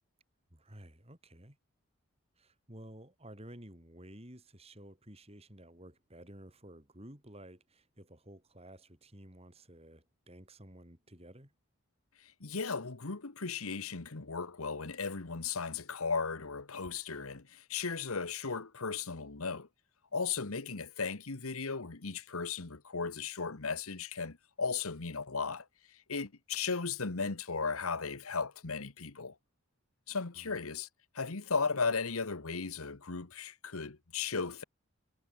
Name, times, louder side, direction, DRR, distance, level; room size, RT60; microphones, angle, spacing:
voice 1, 0.5-1.6 2.4-11.5 30.3-30.6, right 1 dB, 30° right, 5.0 m, -53 dB
voice 2, 12.4-19.7 20.1-25.6 26.1-29.3 30.1-30.9 31.1-34.6, left 5 dB, 80° left, 1.3 m, -36 dB
head